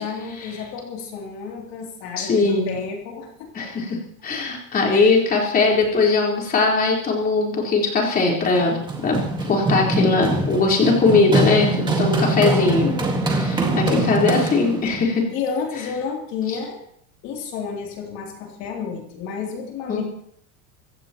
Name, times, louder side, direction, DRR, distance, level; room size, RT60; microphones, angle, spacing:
voice 1, 0.0-3.7 4.9-5.1 12.3-12.7 13.8-14.2 15.3-16.8 17.2-20.0, left 6 dB, 40° left, 0 dB, 3.1 m, -31 dB
voice 2, 2.2-2.8 3.5-4.0 4.2-8.8 9.0-9.2 9.5-13.0 13.2-15.2 16.5-16.6 19.9-20.0, left 3 dB, 20° left, -2 dB, 4.2 m, -20 dB
Run, 8.6-14.9, right 2 dB, 10° right, 1.9 m, -23 dB
25.0 x 16.0 x 3.0 m, 0.67 s
supercardioid pair, 165°, 40 cm